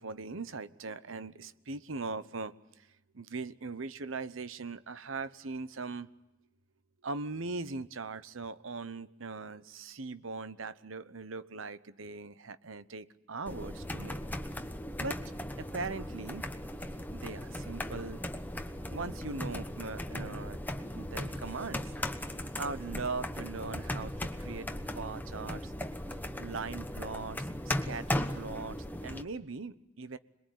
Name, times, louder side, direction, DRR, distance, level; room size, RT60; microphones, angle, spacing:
voice 1, 0.0-2.9 3.1-6.1 7.0-14.2 15.0-15.2 15.6-16.4 17.1-18.2 18.9-20.6 20.9-21.9 22.6-25.7 26.4-30.2, right 3 dB, 70° right, 14 dB, 0.9 m, -40 dB
sound 1, 13.5-29.2, left 1 dB, 10° left, 1.1 m, -38 dB
27.0 x 21.5 x 9.2 m, 0.93 s
head